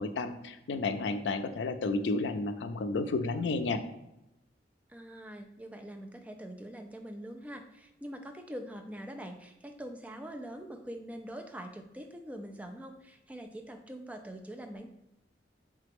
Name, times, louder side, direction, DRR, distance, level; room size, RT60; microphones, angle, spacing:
voice 1, 0.0-3.8, left 3 dB, 85° left, 9 dB, 0.4 m, -31 dB
voice 2, 4.9-14.9, equal, 10° right, 4 dB, 0.3 m, -44 dB
3.8 x 3.3 x 3.5 m, 0.89 s
head